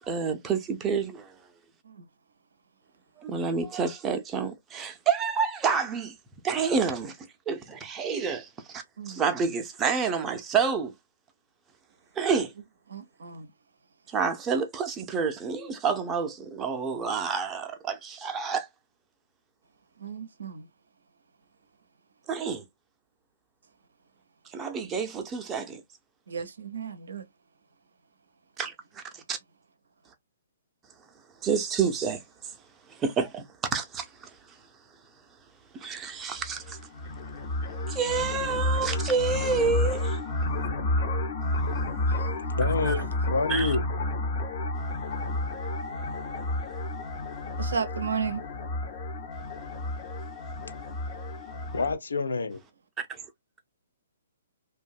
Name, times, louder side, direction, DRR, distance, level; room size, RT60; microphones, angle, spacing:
voice 1, 0.0-1.3 3.2-6.2 6.4-7.2 7.5-10.9 12.2-12.5 14.1-18.7 22.3-22.7 24.5-25.8 28.6-29.4 31.4-32.2 32.9-34.3 35.7-36.8 37.9-40.2 42.6-42.9 43.5-43.8 53.0-53.2, right 5 dB, 15° right, 0.5 m, -29 dB
voice 2, 12.9-13.5 20.0-20.7 26.3-27.3 42.1-42.3 42.8-43.0 47.6-48.4, right 6 dB, 70° right, 0.5 m, -34 dB
sound 1, 36.4-52.0, left 1 dB, 45° left, 0.8 m, -31 dB
voice 3, 42.5-43.8 51.7-52.6, left 4 dB, 75° left, 0.4 m, -28 dB
2.6 x 2.2 x 2.3 m
figure-of-eight pair, 125°, 0 cm